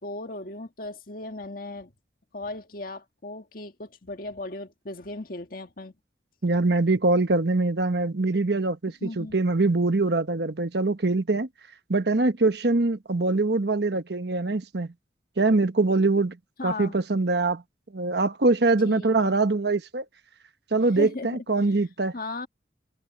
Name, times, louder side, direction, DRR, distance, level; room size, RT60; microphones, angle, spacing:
voice 1, 0.0-1.9 2.3-5.9 9.0-9.4 16.6-17.0 18.8-19.4 20.9-21.3 21.7-21.8 22.1-22.5, left 2 dB, 50° left, 1.7 m, -36 dB
voice 2, 6.4-11.5 11.9-14.9 15.4-16.4 16.6-17.6 17.9-20.0 20.7-22.1, right 3 dB, 65° right, 1.1 m, -23 dB
head